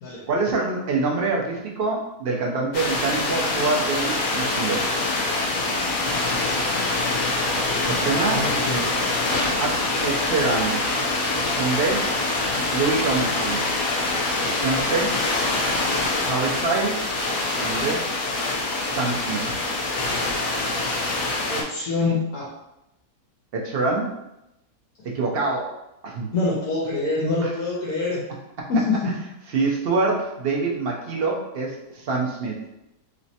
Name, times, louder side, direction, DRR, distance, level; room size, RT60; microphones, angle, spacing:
voice 1, 0.3-4.8 7.9-8.5 9.6-10.8 11.4-12.1 12.7-13.7 14.4-15.2 16.2-17.1 17.6-18.1 18.9-19.5 23.5-24.2 25.1-25.7 26.0-26.3 27.4-27.5 28.6-28.7 29.5-32.6, right 3 dB, 65° right, -1 dB, 0.5 m, -25 dB
sound 1, 2.7-21.6, left 2 dB, 90° left, 0.4 m, -25 dB
voice 2, 7.8-8.9 21.5-22.5 26.3-28.2 28.7-29.1, left 3 dB, 70° left, -5 dB, 1.3 m, -25 dB
3.2 x 3.0 x 2.7 m, 0.88 s
omnidirectional pair, 1.6 m